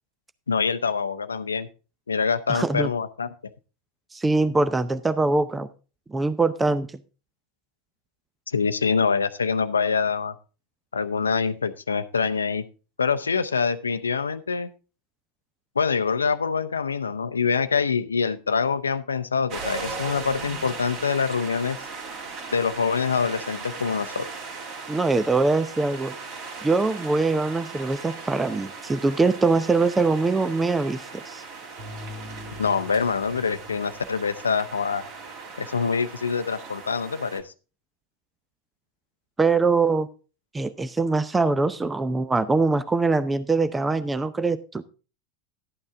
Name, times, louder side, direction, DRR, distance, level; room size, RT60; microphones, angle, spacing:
voice 1, 0.5-1.7 2.1-3.3 8.5-10.4 10.9-12.6 13.0-14.7 15.8-21.8 22.5-24.3 32.6-35.0 35.6-37.5, left 5 dB, 85° left, 12 dB, 0.6 m, -25 dB
voice 2, 2.5-2.9 4.1-5.7 6.1-6.9 24.9-26.1 26.6-31.4 39.4-40.1 40.5-44.8, right 3 dB, 15° right, 14 dB, 0.7 m, -23 dB
sound 1, 19.5-37.4, right 4 dB, 50° right, 2.5 m, -38 dB
12.0 x 8.8 x 3.5 m, 0.34 s
hypercardioid pair, 85°, 0 cm